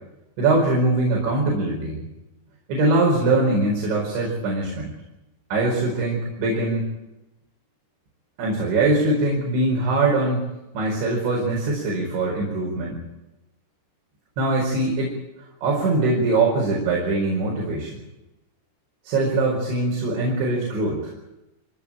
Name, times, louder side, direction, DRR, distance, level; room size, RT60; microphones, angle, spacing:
voice 1, 0.4-2.0 2.7-4.9 5.5-6.9 8.4-10.4 10.8-13.0 14.4-15.1 15.6-18.0 19.0-21.2, right 2 dB, 70° right, -2 dB, 7.2 m, -22 dB
24.5 x 18.0 x 8.9 m, 0.96 s
omnidirectional pair, 5.4 m